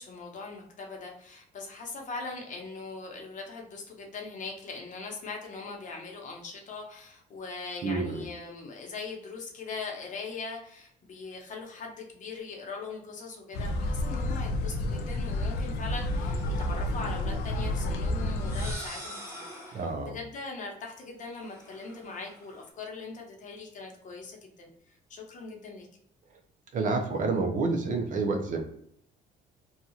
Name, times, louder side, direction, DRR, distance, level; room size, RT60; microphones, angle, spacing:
voice 1, 0.0-25.9, left 4 dB, 50° left, 1 dB, 0.9 m, -41 dB
voice 2, 7.8-8.2 19.7-20.2 26.7-28.6, right 3 dB, 50° right, 5 dB, 0.6 m, -28 dB
sound 1, 13.5-18.7, left 1 dB, 75° left, 0.4 m, -30 dB
sound 2, 15.8-17.2 18.3-20.0 21.4-22.7, equal, 15° right, 1.0 m, -45 dB
2.7 x 2.3 x 2.8 m, 0.71 s
cardioid pair, 110°, 17 cm